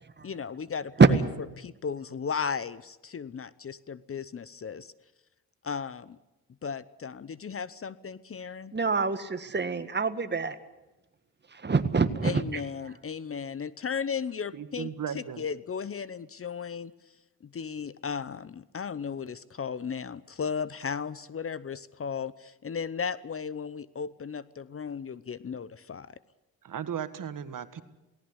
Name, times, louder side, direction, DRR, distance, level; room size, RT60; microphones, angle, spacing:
voice 1, 0.2-1.2 1.6-4.9 5.6-6.2 6.6-8.7 12.2-14.9 15.1-16.9 17.4-26.1, left 6 dB, 35° left, 18 dB, 0.8 m, -35 dB
voice 2, 8.7-10.6 11.5-12.6, right 4 dB, 30° right, 10 dB, 1.7 m, -24 dB
voice 3, 14.5-15.4 26.6-27.8, right 8 dB, 55° right, 12 dB, 1.7 m, -36 dB
18.5 x 17.5 x 9.9 m, 1.0 s
cardioid pair, 85°, 37 cm